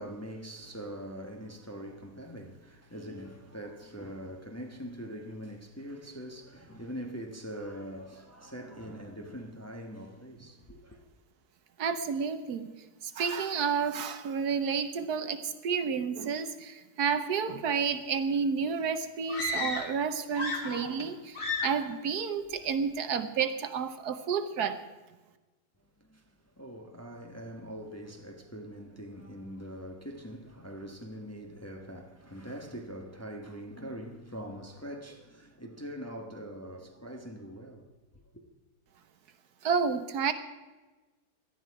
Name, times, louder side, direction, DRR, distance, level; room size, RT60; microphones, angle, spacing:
voice 1, 0.0-11.0 25.8-37.9, equal, 10° left, 1.0 m, -43 dB
voice 2, 11.8-12.7 13.0-24.8 39.6-40.3, right 6 dB, 70° right, 1.4 m, -30 dB
sound 1, 19.3-20.0 20.3-21.1 21.3-21.9, left 2 dB, 40° left, 2.0 m, -33 dB
17.5 x 12.0 x 4.7 m
omnidirectional pair, 1.8 m